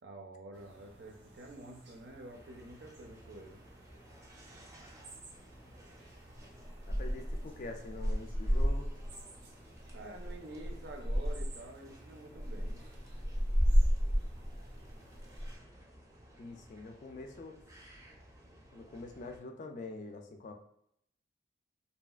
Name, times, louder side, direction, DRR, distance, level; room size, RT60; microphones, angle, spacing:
voice 1, 0.0-3.6 9.9-12.8, right 2 dB, 70° right, 3 dB, 0.5 m, -49 dB
sound 1, 0.5-15.6, equal, 85° right, 0.8 m, -35 dB
sound 2, 2.3-19.4, equal, 15° right, 0.5 m, -57 dB
voice 2, 6.9-8.9 16.4-17.6 18.7-20.5, left 3 dB, 45° left, 4 dB, 0.3 m, -45 dB
2.7 x 2.4 x 2.3 m, 0.73 s
head